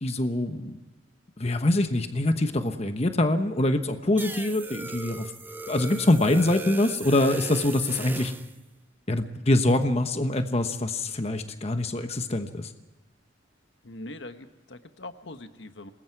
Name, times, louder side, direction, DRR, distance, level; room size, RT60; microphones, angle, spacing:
voice 1, 0.0-0.8 1.4-5.3 5.7-8.3 9.1-12.7, left 1 dB, 35° left, 8 dB, 1.1 m, -24 dB
sound 1, 4.2-8.5, right 3 dB, 10° right, 0.7 m, -38 dB
voice 2, 13.8-15.9, left 2 dB, 70° left, 9 dB, 1.3 m, -42 dB
27.0 x 20.5 x 4.7 m, 1.2 s
head